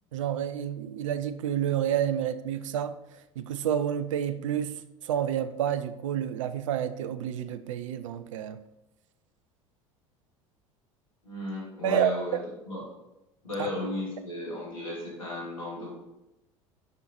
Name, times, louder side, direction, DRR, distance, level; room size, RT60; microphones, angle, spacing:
voice 1, 0.1-2.9 3.4-4.8 5.0-8.6 11.8-12.4 13.6-13.7, right 9 dB, 70° right, 0.5 m, -29 dB
voice 2, 11.2-12.4 12.7-12.8 13.4-16.0, left 2 dB, 85° left, 2.6 m, -34 dB
11.0 x 5.4 x 3.0 m
figure-of-eight pair, 70°, 17 cm